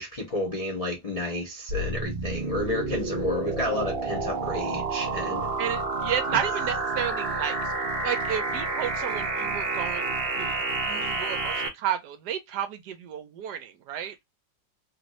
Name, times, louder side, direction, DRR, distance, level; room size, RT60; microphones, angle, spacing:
voice 1, 0.0-5.5, left 1 dB, 65° left, 0.3 m, -31 dB
sound 1, 1.7-11.7, right 3 dB, 50° right, 0.7 m, -29 dB
voice 2, 5.6-7.7 8.0-14.1, right 9 dB, 70° right, 1.1 m, -32 dB
3.2 x 2.6 x 3.0 m
omnidirectional pair, 2.0 m